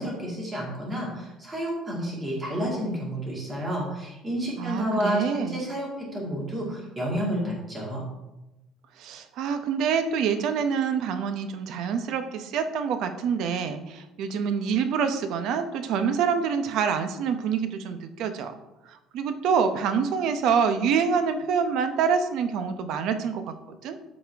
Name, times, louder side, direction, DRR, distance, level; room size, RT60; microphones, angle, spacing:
voice 1, 0.0-8.1, equal, 15° right, -3 dB, 2.1 m, -30 dB
voice 2, 4.6-5.6 9.0-18.5 18.9-24.0, right 6 dB, 55° right, 8 dB, 0.7 m, -26 dB
12.5 x 4.3 x 3.4 m, 0.98 s
cardioid pair, 175°, 0 cm